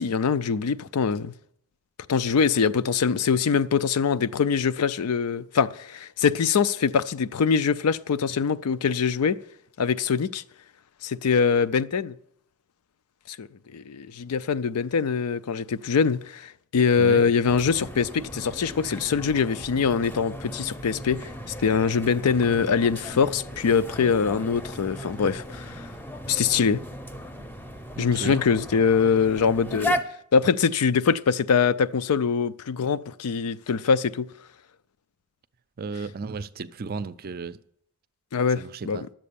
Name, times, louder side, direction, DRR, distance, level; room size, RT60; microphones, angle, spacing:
voice 1, 0.0-1.3 2.1-9.4 9.8-10.4 11.0-12.2 13.3-25.9 26.3-26.8 28.0-30.0 30.3-34.3 38.3-39.1, left 6 dB, 85° left, 0.5 m, -23 dB
sound 1, 17.5-30.0, equal, 10° left, 0.6 m, -36 dB
voice 2, 27.9-28.4 35.8-37.6 38.6-39.0, right 4 dB, 40° right, 0.4 m, -34 dB
11.0 x 7.5 x 6.9 m
head